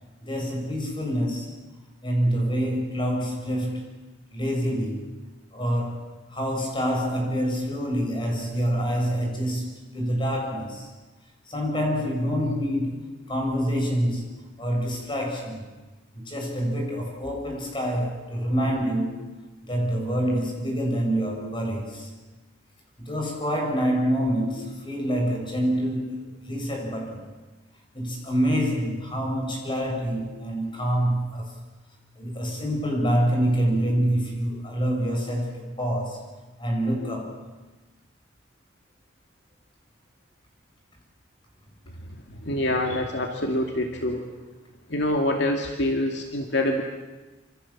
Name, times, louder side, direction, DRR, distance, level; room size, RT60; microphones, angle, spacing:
voice 1, 0.2-1.5 2.0-4.0 4.3-5.2 5.5-10.9 11.4-14.3 14.6-15.7 16.1-22.1 23.0-27.3 27.9-31.5 32.2-36.3 36.6-37.4, equal, 25° left, 1 dB, 7.4 m, -26 dB
voice 2, 42.4-44.2 44.9-46.8, left 1 dB, 65° left, 3 dB, 2.5 m, -25 dB
27.5 x 27.0 x 7.4 m, 1.2 s
head